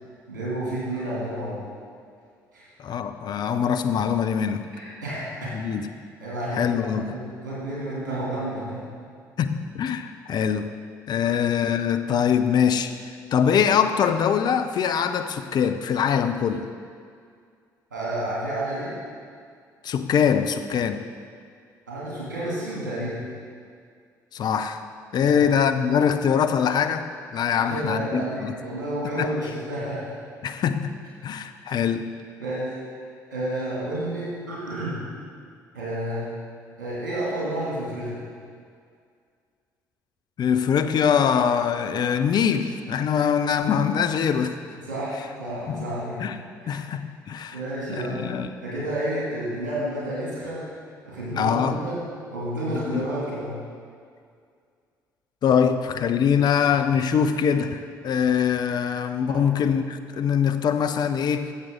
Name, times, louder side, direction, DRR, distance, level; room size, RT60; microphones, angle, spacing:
voice 1, 0.3-1.6 2.5-2.7 4.7-5.8 6.2-8.8 17.9-18.9 21.9-23.2 25.2-25.4 27.6-30.0 32.4-32.8 33.3-35.0 35.7-36.2 36.8-38.2 44.8-46.2 46.6-46.8 47.2-48.2 48.6-50.7 51.0-52.0 52.3-53.6 59.3-59.4, right 1 dB, 80° right, -7 dB, 2.7 m, -30 dB
voice 2, 2.8-4.6 5.5-5.9 6.5-7.2 9.4-10.7 11.1-12.9 13.3-16.7 19.8-21.0 24.3-24.8 25.1-28.5 29.2-29.3 30.4-31.0 31.2-32.1 40.4-44.6 45.7-45.9 46.2-46.4 46.7-47.6 47.9-48.5 51.3-51.8 52.9-53.0 55.4-61.5, left 7 dB, 45° left, 8 dB, 0.6 m, -23 dB
12.5 x 7.5 x 3.8 m, 2.2 s
figure-of-eight pair, 50°, 10 cm